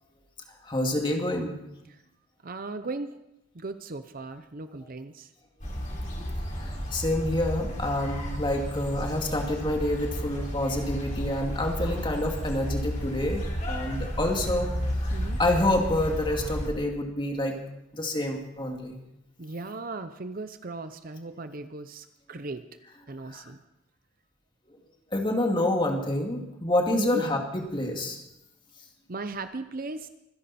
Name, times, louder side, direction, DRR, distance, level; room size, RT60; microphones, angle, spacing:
voice 1, 0.6-1.6 6.5-14.7 15.4-17.6 17.9-19.0 23.3-23.4 25.1-28.2, left 1 dB, 25° left, 2 dB, 2.3 m, -28 dB
voice 2, 2.4-3.2 3.5-5.3 15.1-15.4 19.4-22.6 23.1-23.6 26.9-27.2 29.1-30.1, right 3 dB, 45° right, 10 dB, 0.8 m, -37 dB
sound 1, 5.6-16.7, equal, 40° left, 4.2 m, -32 dB
25.5 x 11.0 x 4.3 m, 0.86 s
head